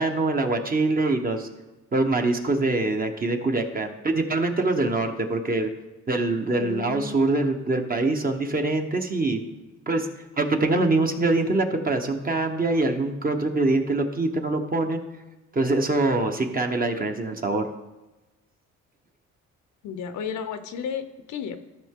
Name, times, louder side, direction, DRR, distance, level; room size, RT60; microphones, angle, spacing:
voice 1, 0.0-1.5 1.9-5.7 6.1-9.4 9.9-10.1 10.4-15.0 15.5-17.7, right 2 dB, 30° right, 5 dB, 1.1 m, -24 dB
voice 2, 6.6-7.2 19.8-21.6, left 7 dB, 75° left, 10 dB, 0.8 m, -33 dB
13.5 x 5.6 x 3.7 m, 1.1 s
cardioid pair, 90°, 30 cm